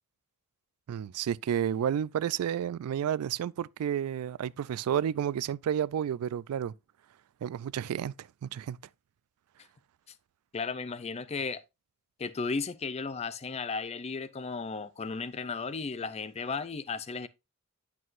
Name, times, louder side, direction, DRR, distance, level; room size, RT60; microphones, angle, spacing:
voice 1, 0.9-6.7 7.4-8.8, right 9 dB, 80° right, 0.3 m, -31 dB
voice 2, 10.5-11.6 12.2-17.3, left 4 dB, 30° left, 0.4 m, -35 dB
9.3 x 6.0 x 2.5 m
head